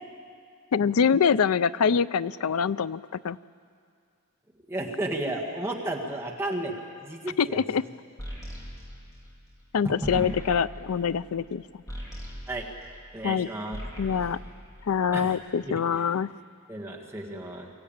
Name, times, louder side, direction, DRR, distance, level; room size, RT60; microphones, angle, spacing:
voice 1, 0.7-3.4 7.4-7.8 9.7-11.6 13.2-13.5 14.0-14.4 14.9-16.3, left 6 dB, 70° left, 16 dB, 0.4 m, -25 dB
voice 2, 4.7-6.7 7.0-7.6 9.8-10.3 12.5-12.7 13.1-13.8 15.1-15.4 15.6-16.0 16.7-17.7, right 1 dB, 10° right, -1 dB, 1.7 m, -33 dB
sound 1, 8.2-13.4 13.6-15.4, equal, 15° left, 3.2 m, -41 dB
24.0 x 15.0 x 8.8 m, 2.3 s
head